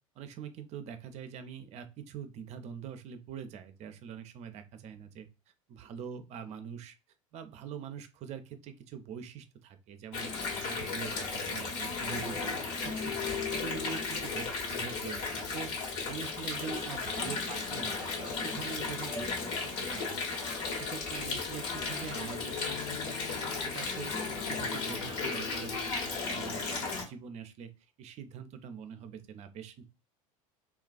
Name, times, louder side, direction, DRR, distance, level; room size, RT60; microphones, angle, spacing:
voice 1, 0.2-5.3 5.7-6.9 7.3-20.4 20.7-23.3 23.6-27.7 28.0-29.8, right 7 dB, 40° right, 9 dB, 0.5 m, -44 dB
Water, 10.1-27.0, left 4 dB, 60° left, 1.1 m, -35 dB
2.3 x 2.3 x 2.4 m, 0.30 s
figure-of-eight pair, 80°, 18 cm